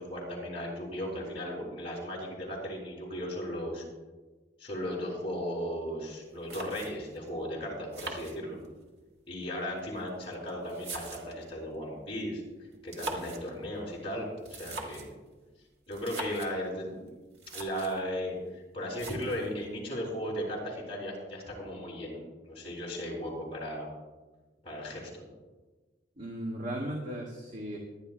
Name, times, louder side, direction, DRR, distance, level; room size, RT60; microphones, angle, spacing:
voice 1, 0.0-3.8 4.6-8.6 9.3-12.4 12.8-15.1 15.9-17.0 17.5-22.2 22.4-23.9 24.6-25.3, equal, 30° left, -4 dB, 4.7 m, -36 dB
sound 1, 6.1-6.2 6.5-7.2 7.9-8.9 9.8-11.5 12.7-13.5 14.4-15.2 15.9-16.5 17.1-17.2 17.3-18.0 18.9-19.5, right 2 dB, 70° right, 1.9 m, -41 dB
voice 2, 26.2-27.8, right 1 dB, 45° right, -2 dB, 1.6 m, -36 dB
25.5 x 10.5 x 2.2 m, 1.2 s
head